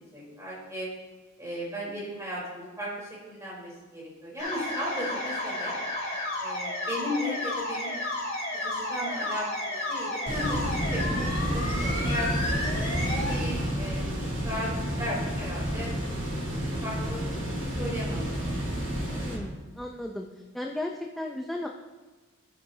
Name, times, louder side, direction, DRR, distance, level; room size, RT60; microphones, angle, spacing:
voice 1, 0.1-0.9 1.4-5.8 6.4-8.0 8.6-12.3 12.9-14.2 14.4-15.9 16.6-18.6, left 1 dB, 15° right, -5 dB, 3.6 m, -36 dB
sound 1, 4.4-13.4, left 1 dB, 30° left, 2.6 m, -32 dB
sound 2, 10.3-19.3, equal, 60° right, 2.9 m, -30 dB
voice 2, 19.1-20.3 20.5-21.7, left 1 dB, ahead, 0 dB, 0.5 m, -35 dB
13.0 x 9.5 x 2.7 m, 1.2 s
head